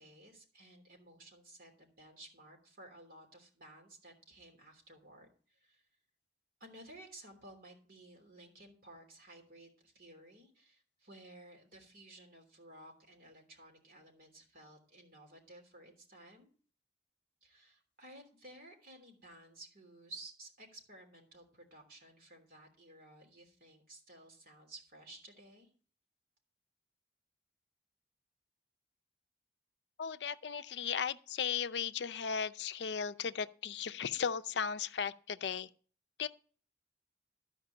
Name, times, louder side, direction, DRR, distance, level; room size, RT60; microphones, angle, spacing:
voice 1, 0.0-5.8 6.6-16.5 17.4-25.7, right 2 dB, 50° right, 3.3 m, -55 dB
voice 2, 30.0-35.7 36.2-36.3, left 7 dB, 80° left, 0.5 m, -36 dB
12.5 x 5.2 x 6.8 m
head